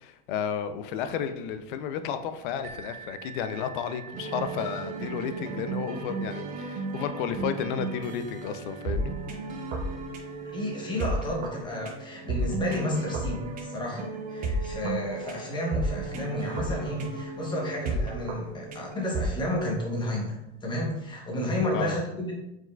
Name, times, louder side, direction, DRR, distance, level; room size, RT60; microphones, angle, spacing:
voice 1, 0.0-9.1 21.7-22.0, left 8 dB, 55° left, 9 dB, 0.5 m, -32 dB
sound 1, 2.6-18.2 18.9-19.0 19.6-19.7, right 6 dB, 70° right, 1.1 m, -51 dB
sound 2, 4.1-19.3, right 3 dB, 25° right, 0.7 m, -34 dB
voice 2, 10.5-22.3, left 1 dB, 15° left, -1 dB, 0.9 m, -31 dB
4.5 x 3.9 x 2.3 m, 0.91 s
supercardioid pair, 140°, 31 cm